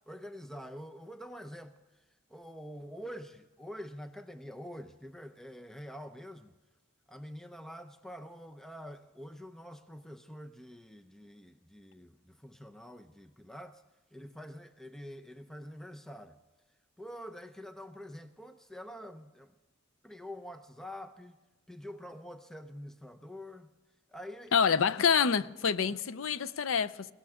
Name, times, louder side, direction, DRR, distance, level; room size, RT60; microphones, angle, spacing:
voice 1, 0.1-6.6 7.1-13.8 14.1-16.4 17.0-19.6 20.0-21.4 21.7-23.7 24.1-24.5 25.9-26.0, equal, ahead, 0.5 m, -46 dB
voice 2, 24.5-27.1, left 6 dB, 85° left, 0.5 m, -27 dB
21.5 x 17.0 x 3.6 m
head